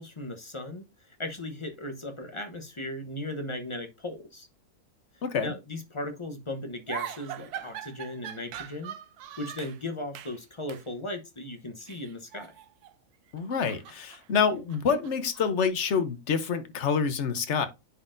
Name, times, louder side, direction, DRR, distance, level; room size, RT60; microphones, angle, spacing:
voice 1, 0.0-4.5 5.4-8.9 9.4-12.5, left 1 dB, 25° left, 0.7 m, -37 dB
voice 2, 5.2-5.5 13.3-17.7, left 6 dB, 55° left, 1.0 m, -27 dB
sound 1, 6.9-9.8 10.1-10.4 10.7-10.9 11.8-13.0 13.3-15.7, right 10 dB, 90° right, 1.2 m, -42 dB
9.9 x 4.1 x 2.5 m
omnidirectional pair, 1.6 m